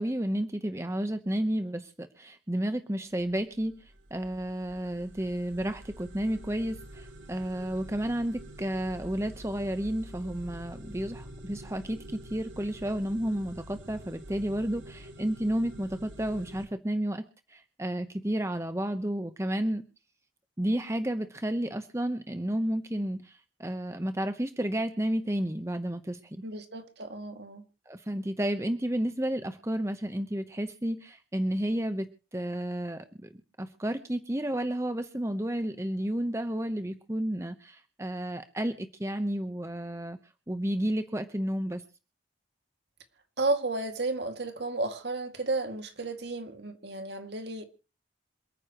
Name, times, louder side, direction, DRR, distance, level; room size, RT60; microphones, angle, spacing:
voice 1, 0.0-3.8 4.1-19.8 20.6-26.4 27.9-33.3 33.6-40.2 40.5-41.8, right 1 dB, 15° right, 0.9 m, -31 dB
sound 1, 3.3-16.7, right 1 dB, 85° right, 2.6 m, -47 dB
voice 2, 26.4-27.6 43.4-47.6, right 2 dB, 65° right, 2.2 m, -32 dB
27.5 x 9.6 x 3.0 m
head